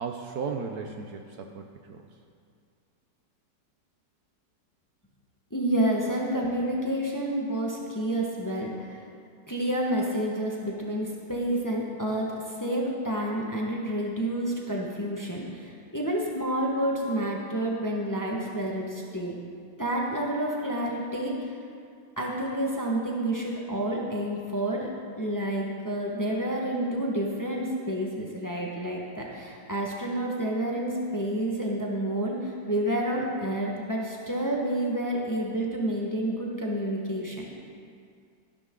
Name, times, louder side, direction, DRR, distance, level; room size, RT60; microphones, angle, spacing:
voice 1, 0.0-2.1, right 5 dB, 65° right, 4 dB, 1.1 m, -35 dB
voice 2, 5.5-9.0 9.5-19.4 19.8-21.6 22.2-24.9 25.2-37.5, right 1 dB, 10° left, -2 dB, 1.2 m, -29 dB
14.5 x 11.5 x 3.8 m, 2.3 s
omnidirectional pair, 2.0 m